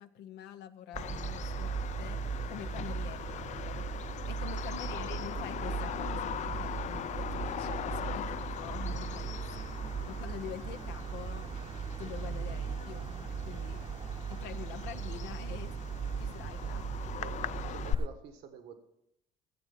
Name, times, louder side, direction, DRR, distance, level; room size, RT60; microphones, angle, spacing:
voice 1, 0.0-3.9 4.3-11.5 12.0-13.9 14.3-15.8 16.2-16.9, left 10 dB, 85° left, 10 dB, 0.7 m, -46 dB
sound 1, 0.9-18.1, right 6 dB, 30° right, 0.7 m, -38 dB
Bird vocalization bird call bird song, 1.0-18.0, left 10 dB, 45° left, 0.4 m, -41 dB
voice 2, 4.7-5.4 12.9-13.1 17.2-17.4 17.7-18.8, right 7 dB, 85° right, 7 dB, 1.5 m, -49 dB
14.5 x 8.1 x 5.7 m, 0.80 s
cardioid pair, 110°, 17 cm